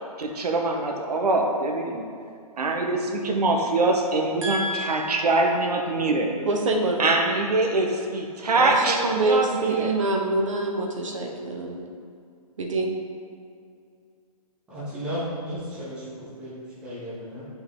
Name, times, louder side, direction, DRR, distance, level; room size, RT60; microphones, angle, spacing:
voice 1, 0.2-2.1 2.6-6.3 7.0-9.9, right 2 dB, 85° right, 2 dB, 1.3 m, -24 dB
voice 2, 4.4-5.3 6.5-7.0 8.6-11.8 12.6-12.9, right 2 dB, 55° right, 2 dB, 1.1 m, -26 dB
voice 3, 14.7-16.6 16.8-17.5, equal, 5° right, -10 dB, 1.3 m, -34 dB
11.0 x 5.7 x 3.7 m, 2.3 s
hypercardioid pair, 180°, 20 cm